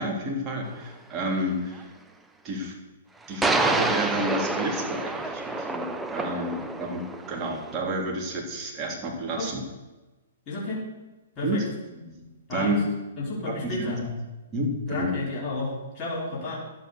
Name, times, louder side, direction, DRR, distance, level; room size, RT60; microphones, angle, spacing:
voice 1, 0.0-1.9 2.4-2.7 3.3-9.6 11.4-11.6 11.9-12.9 13.4-14.1 14.5-15.1, right 1 dB, 25° right, -1 dB, 3.6 m, -30 dB
sound 1, 0.7-0.8 3.4-7.8, right 2 dB, 5° right, 0.9 m, -28 dB
voice 2, 10.5-10.8 11.4-11.6 12.5-12.8 13.2-14.0 14.9-16.6, left 2 dB, 25° left, -6 dB, 4.8 m, -31 dB
11.5 x 8.7 x 6.8 m, 1.1 s
hypercardioid pair, 120°, 0 cm